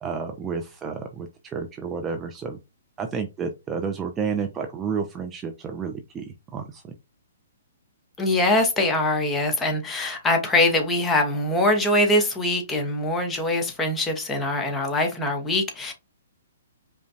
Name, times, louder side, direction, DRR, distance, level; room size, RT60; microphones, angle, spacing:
voice 1, 0.0-2.6 3.0-6.8, right 5 dB, 15° right, 0.4 m, -31 dB
voice 2, 8.2-15.9, left 1 dB, 10° left, 0.9 m, -23 dB
5.0 x 2.2 x 2.7 m
hypercardioid pair, 135°, 0 cm